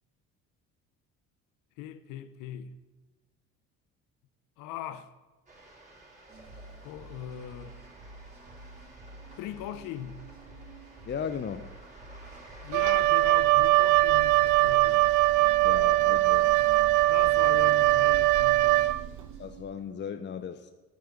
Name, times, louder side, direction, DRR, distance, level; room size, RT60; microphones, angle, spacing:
voice 1, 1.8-2.8 4.6-5.1 6.8-7.8 9.4-10.2 12.6-15.1 16.6-16.7 17.1-19.0, left 11 dB, 75° left, 0.8 m, -40 dB
sound 1, 5.5-13.1, right 2 dB, 20° right, 3.9 m, -53 dB
sound 2, 6.3-19.6, right 2 dB, 40° right, 3.2 m, -49 dB
voice 2, 11.1-11.7 15.6-16.5 19.4-20.7, left 7 dB, 35° left, 0.7 m, -36 dB
Wind instrument woodwind instrument, 12.7-19.3, right 18 dB, 65° right, 0.5 m, -22 dB
9.3 x 7.7 x 7.3 m
supercardioid pair, 75°, 33 cm